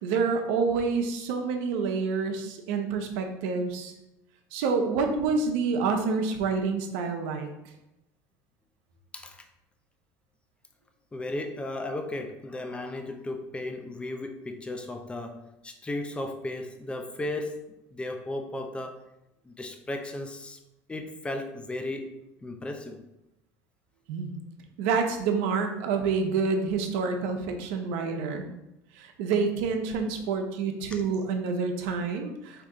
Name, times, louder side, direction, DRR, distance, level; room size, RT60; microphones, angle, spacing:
voice 1, 0.0-3.9 4.5-7.5 24.1-24.4 24.8-28.5 28.9-32.6, right 5 dB, 75° right, 5 dB, 0.7 m, -28 dB
voice 2, 9.1-9.5 11.1-17.6 17.9-19.1 19.4-20.6 20.9-22.1 22.4-23.0 30.9-31.0, left 2 dB, 15° left, 5 dB, 0.6 m, -35 dB
4.9 x 2.8 x 3.6 m, 0.88 s
supercardioid pair, 105°, 8 cm